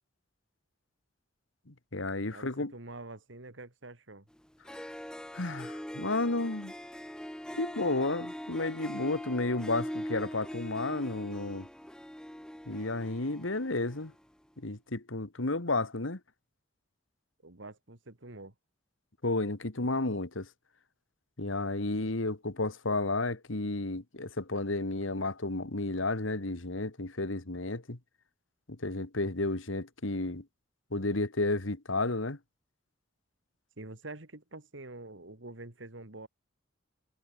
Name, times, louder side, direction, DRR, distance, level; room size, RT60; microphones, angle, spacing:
voice 1, 1.7-2.7 5.3-6.7 7.5-11.7 12.7-14.1 14.6-16.2 19.2-20.5 21.4-28.0 28.8-30.4 30.9-32.4, left 2 dB, 85° left, 2.0 m, -32 dB
voice 2, 2.3-4.3 17.4-18.5 33.8-36.3, right 2 dB, 75° right, 2.4 m, -46 dB
Harp, 4.4-4.5 4.7-14.2, equal, 5° left, 1.1 m, -42 dB
head